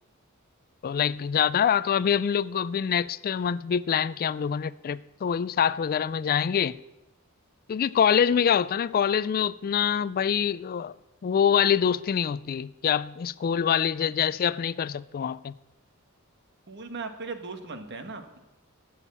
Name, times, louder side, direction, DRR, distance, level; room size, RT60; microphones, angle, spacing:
voice 1, 0.8-6.8 7.7-10.9 11.2-15.5, left 8 dB, 45° left, 0.3 m, -25 dB
voice 2, 16.7-18.4, right 3 dB, 55° right, 1.4 m, -38 dB
12.5 x 7.2 x 8.5 m
head